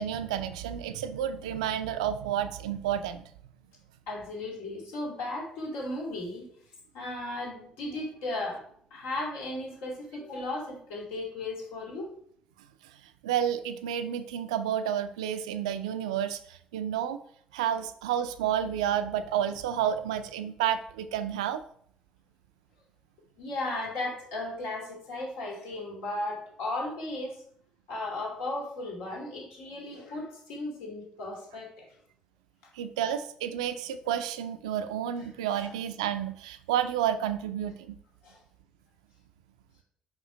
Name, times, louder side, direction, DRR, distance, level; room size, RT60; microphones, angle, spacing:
voice 1, 0.0-3.2 13.2-17.2 17.5-21.6 32.7-38.0, right 10 dB, 80° right, 11 dB, 0.4 m, -30 dB
voice 2, 4.1-6.5 6.9-8.7 8.9-12.1 23.4-27.4 27.9-31.8 32.6-32.7 35.5-35.7 38.2-38.4, left 2 dB, 70° left, -2 dB, 2.4 m, -35 dB
5.5 x 5.2 x 4.9 m, 0.63 s
figure-of-eight pair, 45°, 3 cm